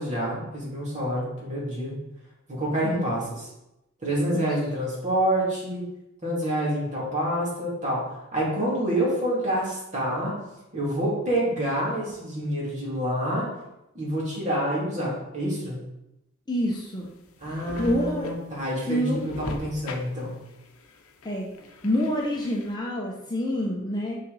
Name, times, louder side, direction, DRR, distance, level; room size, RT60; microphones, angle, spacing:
voice 1, 0.0-2.0 2.5-3.5 4.0-5.9 6.2-10.4 10.7-13.5 13.9-15.8 17.4-20.3, right 1 dB, 35° right, -5 dB, 2.6 m, -27 dB
voice 2, 16.5-17.1 17.8-18.3 18.8-19.2 21.2-21.5 21.8-24.2, equal, 20° left, -2 dB, 0.7 m, -27 dB
sound 1, 16.8-22.7, left 2 dB, 70° left, 0.7 m, -41 dB
5.8 x 5.8 x 4.1 m, 0.90 s
head